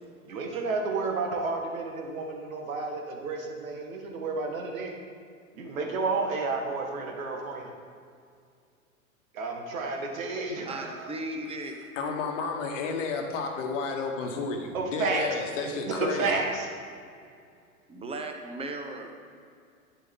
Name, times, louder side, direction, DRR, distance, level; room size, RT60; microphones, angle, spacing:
voice 1, 0.3-4.9 5.5-7.7 9.3-11.2 14.7-15.3 15.9-16.7, right 3 dB, 70° right, 2 dB, 1.7 m, -31 dB
voice 2, 10.6-11.8 17.9-19.1, right 2 dB, 15° right, 4 dB, 0.9 m, -36 dB
voice 3, 11.9-16.3, left 4 dB, 55° left, 3 dB, 1.4 m, -31 dB
10.0 x 8.8 x 3.7 m, 2.3 s
hypercardioid pair, 105°, 43 cm